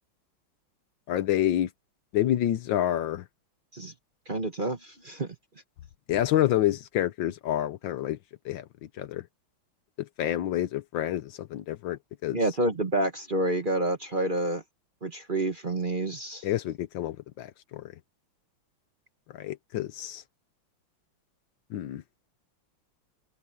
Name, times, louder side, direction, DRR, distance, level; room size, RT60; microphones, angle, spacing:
voice 1, 1.1-1.7 2.1-3.2 6.1-8.2 8.4-8.6 9.0-9.2 10.0-12.4 16.4-17.9 19.3-20.2 21.7-22.0, left 12 dB, 75° left, 1.4 m, -28 dB
voice 2, 4.3-5.3 12.3-14.6 15.0-16.5, right 1 dB, 30° right, 1.2 m, -28 dB
omnidirectional pair, 2.2 m